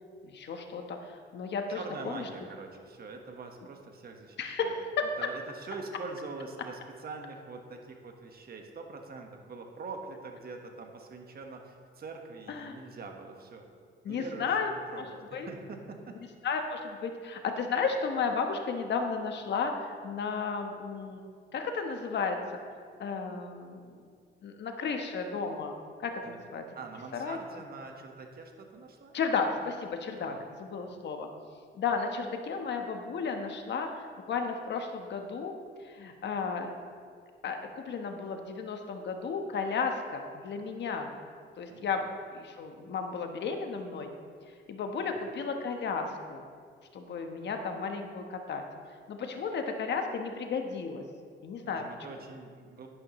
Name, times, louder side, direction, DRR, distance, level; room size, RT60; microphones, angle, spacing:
voice 1, 0.2-2.3 4.4-4.8 12.5-12.7 14.0-15.1 15.3-15.5 16.4-21.2 21.5-22.4 23.0-23.8 24.4-26.6 27.1-27.4 29.1-30.3 30.6-31.3 31.7-35.5 35.8-36.7 37.4-41.1 41.6-42.1 42.3-44.1 44.7-46.4 46.9-48.6 49.1-51.0 51.4-52.2, left 5 dB, 60° left, 5 dB, 1.2 m, -33 dB
voice 2, 1.7-4.7 5.2-13.6 14.1-16.2 26.2-26.4 26.7-29.1 30.2-30.4 41.7-42.0 45.0-45.1 51.6-52.9, right 3 dB, 50° right, 3 dB, 1.4 m, -44 dB
11.5 x 11.0 x 3.1 m, 2.1 s
cardioid pair, 90°, 20 cm